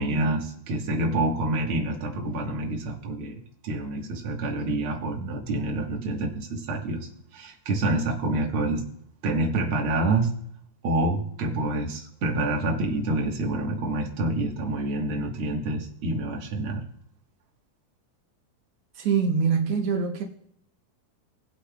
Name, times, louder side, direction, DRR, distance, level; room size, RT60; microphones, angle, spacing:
voice 1, 0.0-8.9 9.2-10.4 10.8-16.8, right 2 dB, 60° right, 1 dB, 1.4 m, -27 dB
voice 2, 18.9-20.2, right 6 dB, 90° right, 2 dB, 1.3 m, -24 dB
19.5 x 8.3 x 2.3 m, 0.72 s
omnidirectional pair, 4.2 m